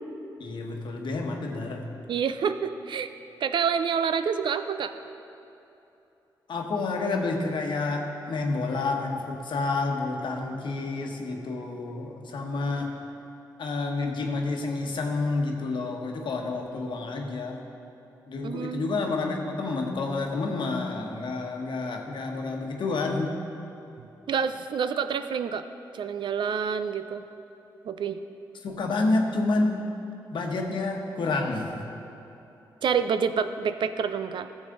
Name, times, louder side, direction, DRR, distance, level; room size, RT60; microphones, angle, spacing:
voice 1, 0.4-1.9 6.5-13.0 13.6-17.6 18.3-23.3 28.6-29.9 30.3-31.9, left 3 dB, 70° left, 2 dB, 1.1 m, -29 dB
voice 2, 2.1-3.1 3.4-4.9 18.4-19.0 24.0-25.6 25.9-27.2 27.8-28.2 32.8-34.5, right 6 dB, 70° right, 10 dB, 0.4 m, -28 dB
13.5 x 7.2 x 3.9 m, 2.9 s
cardioid pair, 55°, 8 cm